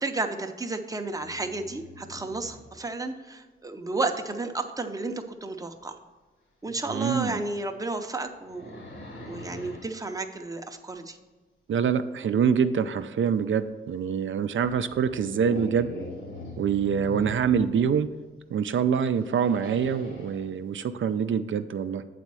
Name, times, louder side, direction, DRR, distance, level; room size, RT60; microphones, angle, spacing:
voice 1, 0.0-6.0 6.6-8.7 9.2-11.2, right 3 dB, 15° right, 6 dB, 0.6 m, -32 dB
sound 1, 1.2-2.8 5.7-5.8 6.7-6.9 7.5-9.9 13.7-13.8 14.6-18.0 19.2-20.5, left 1 dB, 70° left, 1.7 m, -42 dB
voice 2, 6.9-7.4 11.7-15.9 16.6-18.1 18.5-22.0, right 7 dB, 65° right, 10 dB, 0.4 m, -25 dB
8.0 x 4.2 x 6.1 m, 1.3 s
wide cardioid pair, 130°, 21 cm